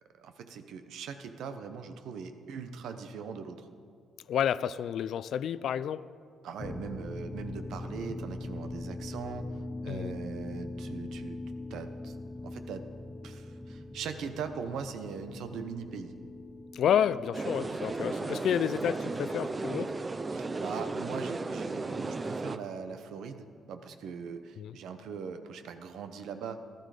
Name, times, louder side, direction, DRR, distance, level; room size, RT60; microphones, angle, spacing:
voice 1, 0.2-3.7 6.4-9.5 9.8-11.4 11.7-12.8 13.2-16.1 20.3-26.6, right 6 dB, 80° right, 8 dB, 0.9 m, -41 dB
voice 2, 4.3-6.0 9.9-10.1 16.7-19.9 24.6-24.7, left 9 dB, 70° left, 17 dB, 0.3 m, -30 dB
sound 1, 6.6-17.8, left 2 dB, 30° left, 0.9 m, -41 dB
sound 2, 17.3-22.6, right 3 dB, 30° right, 0.6 m, -35 dB
14.5 x 11.5 x 5.0 m, 2.3 s
cardioid pair, 75°, 0 cm